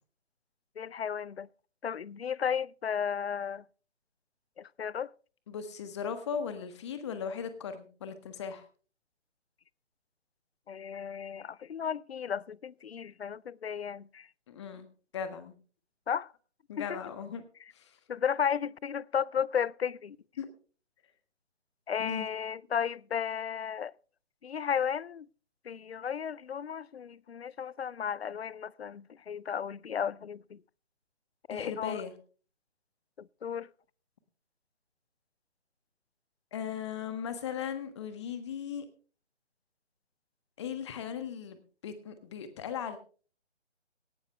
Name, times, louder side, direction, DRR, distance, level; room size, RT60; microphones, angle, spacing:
voice 1, 0.8-1.5 1.8-3.6 4.6-5.1 10.7-14.3 16.1-16.3 16.8-17.0 18.1-20.2 21.9-23.9 24.4-25.3 25.6-30.6 31.5-32.0 33.2-33.7, left 7 dB, 60° left, 0.5 m, -34 dB
voice 2, 5.5-8.6 14.5-14.9 15.1-15.5 16.7-17.4 17.7-18.0 20.4-20.5 22.0-22.3 31.5-32.1 36.5-38.8 40.6-43.0, left 7 dB, 25° left, 1.4 m, -37 dB
17.5 x 11.5 x 3.3 m
figure-of-eight pair, 145°, 35 cm